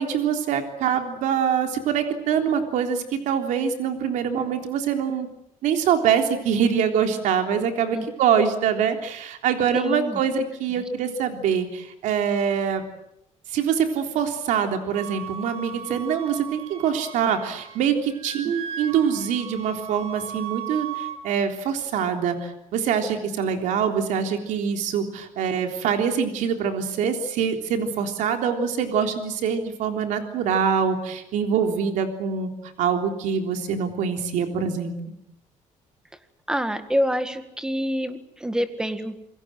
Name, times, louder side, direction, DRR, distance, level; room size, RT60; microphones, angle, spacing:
voice 1, 0.0-5.3 5.6-12.8 13.5-32.5 32.8-34.9, right 7 dB, 85° right, 5 dB, 3.5 m, -24 dB
voice 2, 9.7-10.2 10.8-10.9 36.5-39.2, equal, 5° right, 9 dB, 1.9 m, -26 dB
Wind instrument woodwind instrument, 14.9-17.9 18.1-21.2, right 9 dB, 50° right, 2.2 m, -37 dB
27.5 x 23.0 x 7.8 m, 0.79 s
cardioid pair, 170°, 13 cm